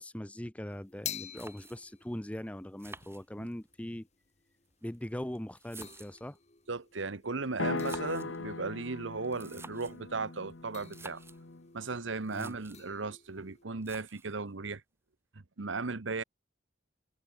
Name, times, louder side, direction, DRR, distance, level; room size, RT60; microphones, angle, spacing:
voice 1, 0.0-4.1 4.8-6.4 12.3-12.6, left 1 dB, 5° left, 0.5 m, -40 dB
sound 1, 0.7-13.6, left 8 dB, 35° left, 1.9 m, -49 dB
sound 2, 1.4-2.0 2.8-3.8 4.7-6.4 7.6-8.4 9.2-10.0 10.8-11.4 11.9-12.0 12.2-12.9 13.8-14.4, right 3 dB, 15° right, 1.6 m, -50 dB
voice 2, 6.7-11.2 11.7-14.8 15.3-16.2, right 4 dB, 80° right, 1.1 m, -36 dB
sound 3, 7.6-11.7, left 3 dB, 75° left, 1.1 m, -39 dB
head